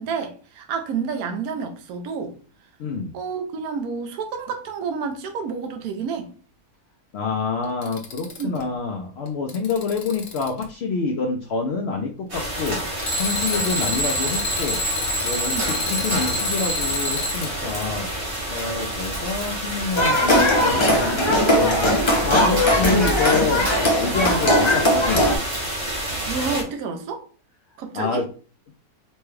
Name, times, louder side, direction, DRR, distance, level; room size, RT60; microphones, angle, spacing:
voice 1, 0.0-2.4 3.1-6.3 8.4-8.6 15.5-15.7 26.1-27.3 27.8-28.3, right 5 dB, 75° right, 1.1 m, -29 dB
voice 2, 2.8-3.1 7.1-12.8 13.2-14.8 15.2-18.1 18.5-22.0 22.2-23.7 24.0-25.2 27.9-28.3, left 4 dB, 75° left, 0.6 m, -27 dB
Alarm, 7.6-8.6 9.3-10.6 13.0-17.5 20.8-20.9 23.1-23.2, left 1 dB, 55° left, 0.9 m, -27 dB
sound 1, 12.3-26.6, right 1 dB, 30° right, 0.7 m, -29 dB
sound 2, 20.0-25.4, left 1 dB, 30° left, 0.5 m, -19 dB
4.2 x 2.2 x 3.2 m
omnidirectional pair, 1.6 m